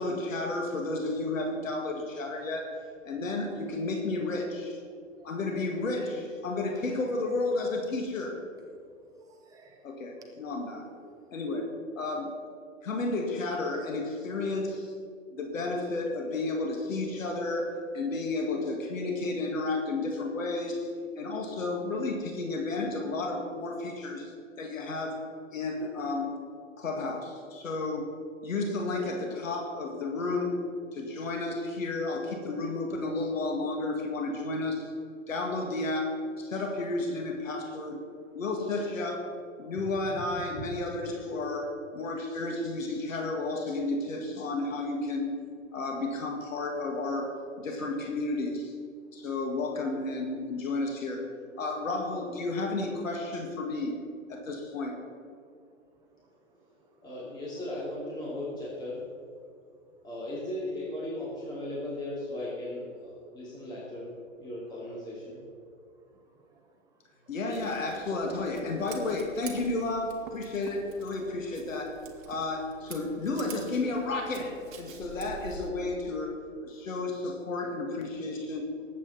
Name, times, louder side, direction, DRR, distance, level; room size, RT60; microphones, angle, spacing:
voice 1, 0.0-2.7 3.0-4.8 5.2-8.4 9.8-10.8 11.3-11.7 12.0-12.3 12.8-14.9 15.3-20.9 21.2-24.3 24.6-25.2 25.5-26.3 26.8-28.1 28.4-30.6 30.9-34.9 35.3-38.0 38.3-39.3 39.6-45.3 45.7-48.7 49.1-51.3 51.6-54.0 54.3-55.0 67.3-72.0 72.3-78.7, left 2 dB, 75° left, 2 dB, 2.2 m, -32 dB
voice 2, 9.0-11.3 38.0-38.4 39.6-40.7 56.0-56.3 56.6-56.9 66.0-67.4, right 5 dB, 10° right, 2 dB, 0.5 m, -50 dB
voice 3, 57.0-59.0 60.0-64.1 64.4-65.4, left 1 dB, 10° left, -7 dB, 2.6 m, -37 dB
Scissors, 67.5-75.7, right 6 dB, 40° right, 1.6 m, -47 dB
19.0 x 8.4 x 4.2 m, 2.3 s
hypercardioid pair, 145°, 39 cm